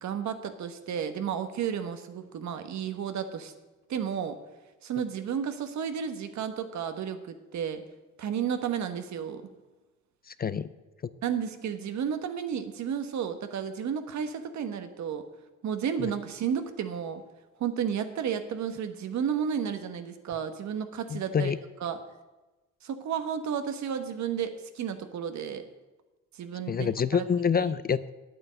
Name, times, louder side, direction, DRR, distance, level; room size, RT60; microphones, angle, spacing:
voice 1, 0.0-3.5 3.9-4.4 4.8-7.8 8.2-9.4 11.2-15.3 15.6-17.2 17.6-21.5 21.8-22.0 22.8-25.6 26.3-27.3, right 8 dB, 65° right, 8 dB, 1.3 m, -32 dB
voice 2, 10.3-10.7 16.0-16.1 21.1-21.6 26.7-28.1, left 6 dB, 30° left, 15 dB, 0.5 m, -27 dB
9.2 x 9.1 x 7.7 m, 1.1 s
cardioid pair, 90°, 30 cm